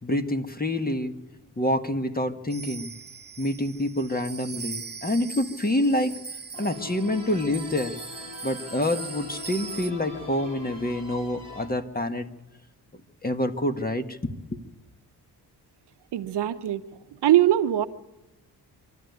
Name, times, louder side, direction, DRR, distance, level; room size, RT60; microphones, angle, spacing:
voice 1, 0.0-1.1 1.6-2.9 3.4-6.1 6.6-7.9 8.4-12.3 13.2-14.6, left 1 dB, 20° left, 7 dB, 1.7 m, -27 dB
sound 1, 2.5-9.9, right 5 dB, 25° right, 1.0 m, -40 dB
sound 2, 6.5-11.7, left 4 dB, 90° left, 5.4 m, -41 dB
voice 2, 16.1-16.8 17.2-17.9, right 13 dB, 80° right, 10 dB, 1.0 m, -21 dB
25.0 x 13.0 x 9.5 m, 1.0 s
cardioid pair, 80°, 40 cm